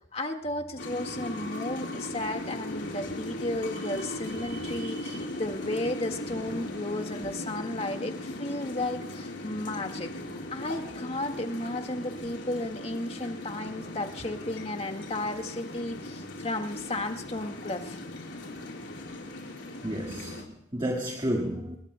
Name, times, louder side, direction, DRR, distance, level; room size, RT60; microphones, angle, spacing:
voice 1, 0.1-10.1 10.5-18.0, left 1 dB, 30° left, 5 dB, 1.8 m, -34 dB
sound 1, 0.8-20.4, left 1 dB, 80° left, 4.5 m, -38 dB
voice 2, 4.4-5.2 19.8-21.8, equal, 25° right, 1 dB, 1.8 m, -33 dB
30.0 x 21.5 x 2.2 m, 0.78 s
head